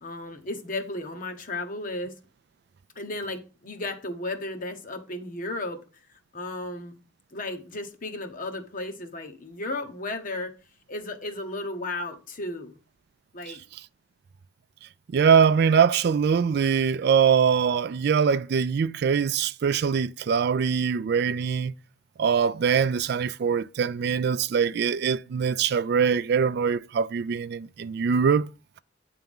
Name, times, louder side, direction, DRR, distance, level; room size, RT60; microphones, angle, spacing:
voice 1, 0.0-2.2 2.9-5.8 6.3-7.0 7.3-10.5 10.9-12.8 13.3-13.6, left 2 dB, 45° left, 1.1 m, -34 dB
voice 2, 15.1-21.7 22.2-28.5, right 6 dB, 60° right, 0.3 m, -23 dB
8.8 x 3.5 x 5.3 m
head